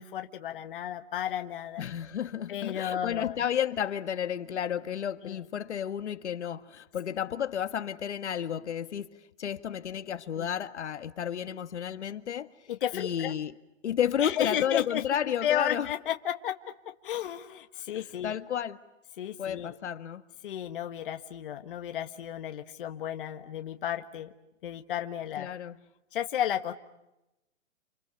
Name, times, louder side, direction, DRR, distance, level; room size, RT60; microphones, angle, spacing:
voice 1, 0.0-1.8 2.5-3.4 5.2-5.4 10.4-10.5 12.7-13.3 14.2-15.0 15.4-16.5 17.0-18.4 19.2-19.7 20.4-24.3 24.6-25.5 26.1-26.7, left 10 dB, 45° left, 1.5 m, -33 dB
voice 2, 1.8-9.1 9.4-12.5 12.9-13.5 13.8-15.9 17.9-18.8 19.4-20.2 25.4-25.8, left 9 dB, 65° left, 1.7 m, -32 dB
29.0 x 29.0 x 6.9 m
hypercardioid pair, 170°, 38 cm